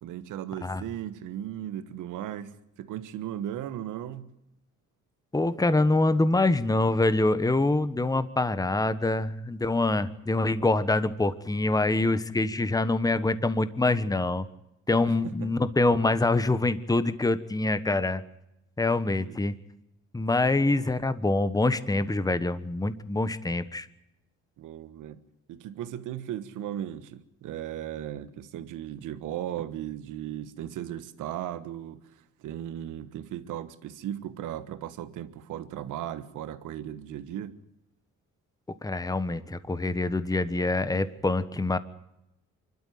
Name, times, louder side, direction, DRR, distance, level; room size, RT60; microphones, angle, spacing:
voice 1, 0.0-4.3 15.1-15.5 19.3-19.4 20.6-20.9 24.6-25.2 25.5-37.6, right 11 dB, 90° right, 1.4 m, -37 dB
voice 2, 5.3-14.4 14.9-18.2 18.8-19.5 20.1-23.9 38.8-41.8, left 2 dB, 10° left, 1.2 m, -25 dB
25.0 x 12.5 x 9.3 m
cardioid pair, 90°, 30 cm